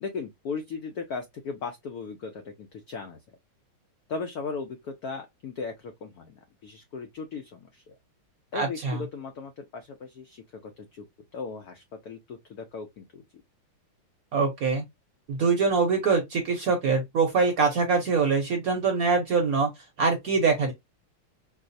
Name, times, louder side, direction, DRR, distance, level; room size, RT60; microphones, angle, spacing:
voice 1, 0.0-3.2 4.1-7.9 8.5-11.1 11.3-13.2, left 4 dB, 80° left, 0.8 m, -37 dB
voice 2, 8.5-9.0 14.3-14.8 15.3-19.7 20.0-20.7, right 4 dB, 60° right, 1.0 m, -24 dB
4.7 x 2.0 x 2.6 m
omnidirectional pair, 2.3 m